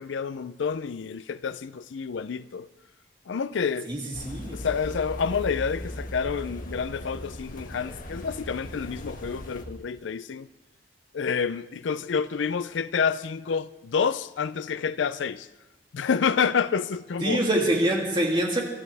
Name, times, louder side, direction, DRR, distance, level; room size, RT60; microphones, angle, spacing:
voice 1, 0.0-2.7 3.3-3.9 4.5-10.5 11.1-15.5 15.9-17.4, left 6 dB, 75° left, 0.4 m, -28 dB
voice 2, 3.9-4.6 17.2-18.6, right 1 dB, 25° right, 2.7 m, -25 dB
sound 1, 4.1-9.6, equal, 45° left, 1.6 m, -38 dB
24.5 x 13.0 x 3.4 m
head